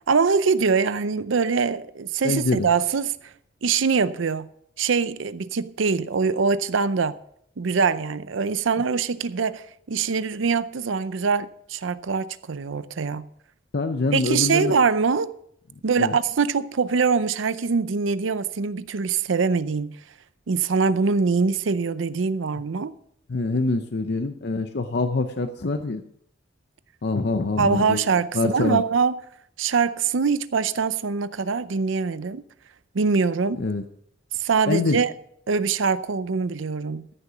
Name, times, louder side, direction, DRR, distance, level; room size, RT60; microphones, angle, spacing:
voice 1, 0.1-3.3 3.6-4.5 4.8-7.2 7.6-13.3 14.1-15.3 15.8-20.0 20.5-22.9 27.6-29.2 29.6-32.4 32.9-33.6 34.3-35.1 35.5-37.1, right 5 dB, 85° right, 0.6 m, -23 dB
voice 2, 2.2-2.7 13.7-14.8 16.0-16.2 23.3-26.0 27.0-28.0 28.3-28.8 33.6-33.8 34.7-35.0, left 3 dB, 60° left, 0.6 m, -25 dB
14.0 x 6.8 x 6.0 m
head